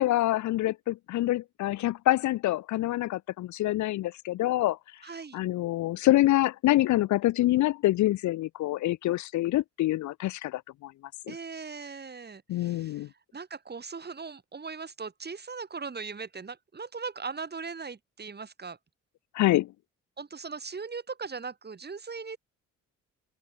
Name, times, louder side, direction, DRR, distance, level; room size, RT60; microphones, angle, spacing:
voice 1, 0.0-4.8 5.3-10.9 11.3-11.4 12.5-13.1 19.3-19.7, left 15 dB, 75° left, 0.6 m, -26 dB
voice 2, 5.0-5.4 11.3-18.8 20.2-22.4, right 5 dB, 35° right, 7.0 m, -39 dB
open air
cardioid pair, 90°, 30 cm